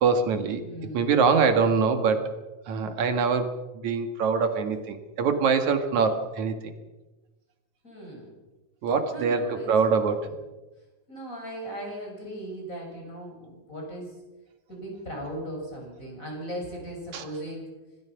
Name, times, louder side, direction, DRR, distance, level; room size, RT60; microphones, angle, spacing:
voice 1, 0.0-0.6 0.9-2.3 2.7-3.5 3.8-6.5 8.8-10.3 17.1-17.2, right 5 dB, 70° right, 8 dB, 3.2 m, -23 dB
voice 2, 0.6-1.3 7.8-8.4 9.1-9.7 10.2-10.3 11.1-14.1 14.7-17.7, right 1 dB, 25° left, -1 dB, 7.8 m, -38 dB
26.0 x 18.5 x 5.9 m, 1.1 s
omnidirectional pair, 3.5 m